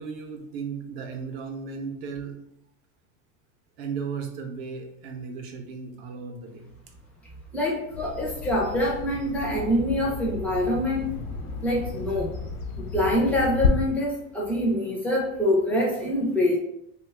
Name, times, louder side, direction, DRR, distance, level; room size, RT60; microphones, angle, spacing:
voice 1, 0.0-2.4 3.8-6.7, right 5 dB, 55° right, 4 dB, 0.7 m, -35 dB
voice 2, 7.5-11.2 11.6-12.3 12.8-16.6, left 1 dB, 5° left, -3 dB, 0.4 m, -25 dB
Bird vocalization bird call bird song, 7.9-13.7, left 6 dB, 85° left, 0.8 m, -32 dB
2.9 x 2.2 x 3.3 m, 0.78 s
supercardioid pair, 150°, 40 cm